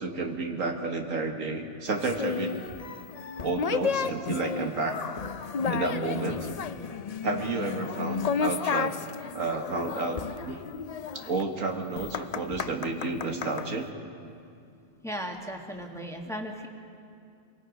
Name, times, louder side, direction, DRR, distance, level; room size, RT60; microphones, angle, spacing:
voice 1, 0.0-2.6 3.4-5.0 5.7-6.5 7.2-9.0 9.3-10.2 10.5-10.6 11.1-13.9, right 3 dB, 80° right, 3 dB, 2.1 m, -31 dB
sound 1, 2.0-13.7, left 6 dB, 55° left, 0.4 m, -33 dB
voice 2, 15.0-16.7, equal, ahead, 1 dB, 1.8 m, -36 dB
26.5 x 23.5 x 5.2 m, 2.5 s
omnidirectional pair, 1.3 m